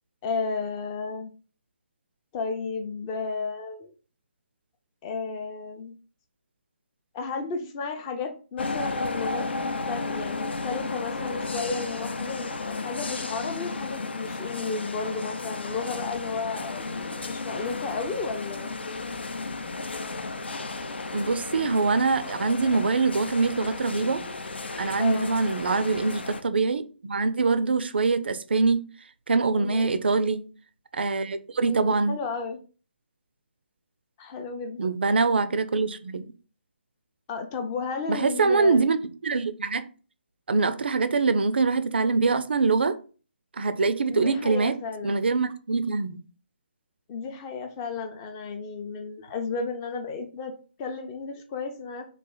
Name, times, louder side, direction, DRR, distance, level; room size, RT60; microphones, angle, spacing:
voice 1, 0.2-1.3 2.3-3.9 5.0-5.9 7.1-9.5 9.9-16.8 17.2-18.8 25.0-25.3 29.5-29.9 31.6-32.6 34.2-34.9 37.3-38.9 44.1-45.2 47.1-50.5 50.8-52.1, left 4 dB, 20° left, 6 dB, 0.5 m, -33 dB
sound 1, 8.6-26.4, left 3 dB, 70° left, 0.5 m, -33 dB
voice 2, 21.1-24.2 24.8-28.8 29.3-30.4 30.9-32.2 34.8-36.2 38.1-39.8 40.5-43.0 43.6-44.8 45.0-46.2, right 4 dB, 65° right, 12 dB, 0.4 m, -24 dB
4.1 x 2.4 x 3.8 m, 0.37 s
figure-of-eight pair, 145°, 6 cm